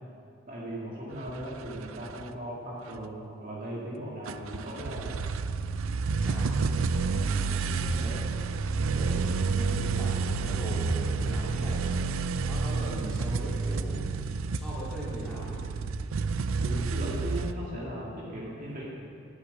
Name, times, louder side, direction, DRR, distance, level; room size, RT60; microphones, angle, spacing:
voice 1, 0.5-5.2 16.6-18.9, right 1 dB, 40° right, -5 dB, 2.1 m, -37 dB
sound 1, 1.1-2.2 3.0-3.1 4.3-17.5, right 4 dB, 80° right, 0.4 m, -30 dB
voice 2, 6.2-6.8 7.1-8.2 8.9-11.9 12.4-14.1 14.5-15.6, equal, 5° left, -8 dB, 3.3 m, -40 dB
10.0 x 8.1 x 8.4 m, 2.4 s
head